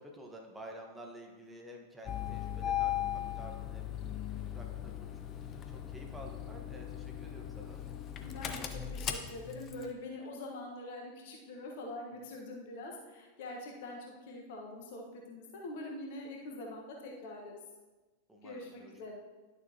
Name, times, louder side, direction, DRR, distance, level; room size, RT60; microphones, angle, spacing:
voice 1, 0.0-4.0 4.3-5.2 5.7-7.8 12.2-12.3 18.3-19.1, right 1 dB, 10° right, 0 dB, 1.2 m, -51 dB
Engine starting, 2.0-9.9, left 10 dB, 30° left, 0.7 m, -38 dB
voice 2, 8.2-14.0 14.3-17.5 18.4-19.1, left 2 dB, 50° left, 0 dB, 1.3 m, -44 dB
11.0 x 6.8 x 2.8 m, 1.2 s
figure-of-eight pair, 90°, 0 cm